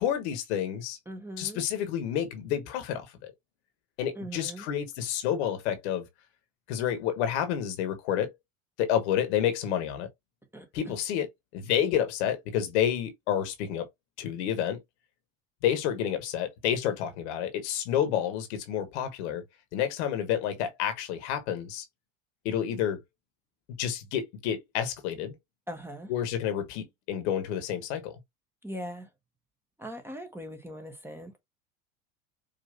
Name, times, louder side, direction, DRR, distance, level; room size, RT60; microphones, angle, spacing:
voice 1, 0.0-1.0 1.4-3.3 4.0-6.1 6.7-8.3 8.8-10.1 10.7-13.9 14.2-14.8 15.6-19.4 19.7-21.8 22.4-23.0 23.8-25.4 26.1-28.2, left 10 dB, 60° left, 1.2 m, -29 dB
voice 2, 1.1-1.6 4.1-4.7 10.5-10.7 25.7-26.1 28.6-29.1 29.8-31.3, equal, 5° right, 0.9 m, -40 dB
5.1 x 2.7 x 2.5 m
figure-of-eight pair, 80°, 39 cm